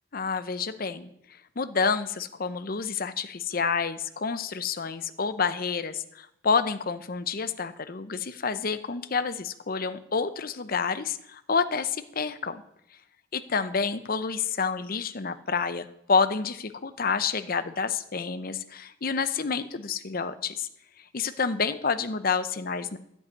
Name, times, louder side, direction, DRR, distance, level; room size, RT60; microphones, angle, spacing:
voice 1, 0.1-1.1 1.6-12.6 13.3-20.7 21.1-23.0, left 5 dB, 45° left, 12 dB, 0.7 m, -29 dB
11.0 x 8.1 x 9.6 m, 0.79 s
head